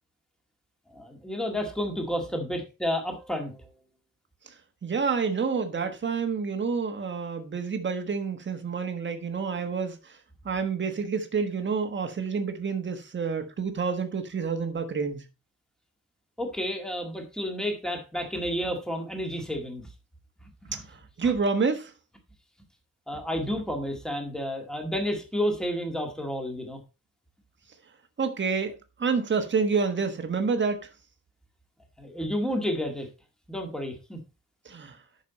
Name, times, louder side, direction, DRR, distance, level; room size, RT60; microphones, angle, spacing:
voice 1, 0.9-3.6 16.4-19.8 20.4-20.8 21.2-21.3 23.1-26.8 32.0-33.1 33.5-34.2, equal, ahead, 1.8 m, -31 dB
voice 2, 4.8-10.2 10.4-15.2 20.7-21.9 28.2-28.7 29.0-30.8 34.6-35.0, right 5 dB, 35° right, 1.4 m, -28 dB
9.8 x 6.5 x 4.1 m
wide cardioid pair, 180°, 32 cm